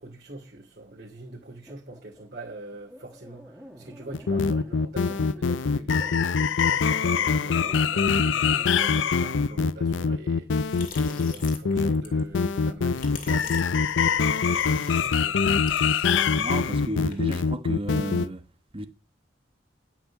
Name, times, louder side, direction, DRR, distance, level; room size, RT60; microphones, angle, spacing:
voice 1, 0.0-15.4, right 2 dB, 55° right, 2.8 m, -44 dB
sound 1, 1.7-9.3, equal, 5° right, 1.7 m, -49 dB
sound 2, 4.1-18.3, left 5 dB, 85° left, 0.5 m, -24 dB
sound 3, 10.6-17.6, left 4 dB, 45° left, 2.4 m, -44 dB
voice 2, 16.3-18.4 18.7-18.9, right 1 dB, 30° right, 1.2 m, -32 dB
11.0 x 6.0 x 7.2 m
head